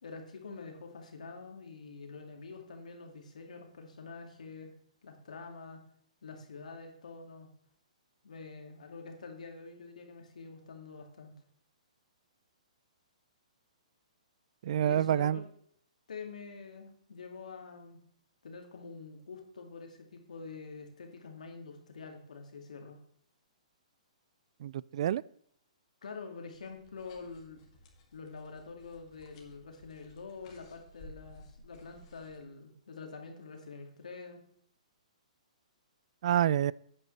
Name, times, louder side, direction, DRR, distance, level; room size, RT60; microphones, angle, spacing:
voice 1, 0.0-4.7 5.0-5.8 6.2-7.5 8.2-11.3 14.8-15.4 16.1-18.0 18.4-23.0 26.0-27.6 28.1-34.4, left 4 dB, 75° left, 3 dB, 2.3 m, -46 dB
voice 2, 14.6-15.4 24.6-25.2 36.2-36.7, right 11 dB, 55° right, 22 dB, 0.3 m, -27 dB
sound 1, 26.5-32.4, left 1 dB, 45° left, 2.5 m, -57 dB
12.5 x 8.8 x 3.3 m, 0.64 s
hypercardioid pair, 135°, 4 cm